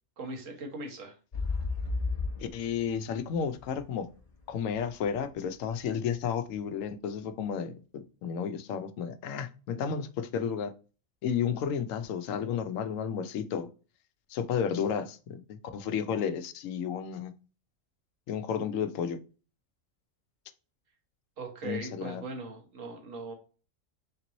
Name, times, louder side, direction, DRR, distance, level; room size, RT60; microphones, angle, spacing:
voice 1, 0.2-1.2 21.4-23.3, right 3 dB, 80° right, 1.5 m, -39 dB
sound 1, 1.3-5.2 5.8-5.9, left 3 dB, 35° left, 0.9 m, -34 dB
voice 2, 2.4-4.1 4.5-10.7 11.2-13.7 14.3-17.3 18.3-19.2 21.6-22.2, left 7 dB, 90° left, 1.0 m, -32 dB
3.7 x 3.0 x 3.9 m
omnidirectional pair, 1.3 m